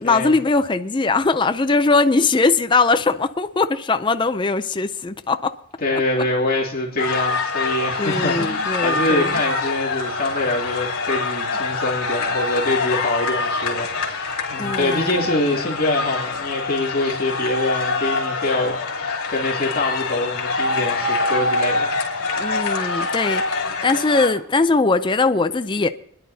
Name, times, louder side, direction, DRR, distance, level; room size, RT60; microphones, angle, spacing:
voice 1, 0.0-5.5 5.9-6.3 8.0-9.4 14.6-15.2 22.4-23.5 23.8-25.9, left 3 dB, 20° left, 0.4 m, -20 dB
voice 2, 5.8-22.0, left 2 dB, 40° left, 2.6 m, -24 dB
sound 1, 7.0-24.3, left 3 dB, 65° left, 3.2 m, -25 dB
26.5 x 10.5 x 2.8 m
head